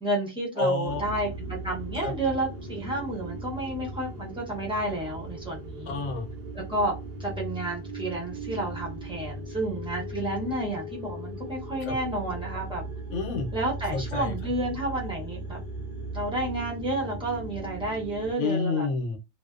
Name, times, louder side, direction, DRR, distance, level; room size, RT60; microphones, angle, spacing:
voice 1, 0.0-6.0 6.5-12.8 13.5-15.6 16.1-18.9, right 1 dB, 5° right, 0.4 m, -31 dB
voice 2, 0.6-1.0 2.0-2.1 5.9-6.3 11.8-11.9 13.1-13.5 13.9-14.3 18.4-19.2, left 3 dB, 75° left, 1.0 m, -28 dB
sound 1, 0.8-18.3, right 1 dB, 65° right, 0.5 m, -37 dB
2.6 x 2.0 x 2.4 m
omnidirectional pair, 1.5 m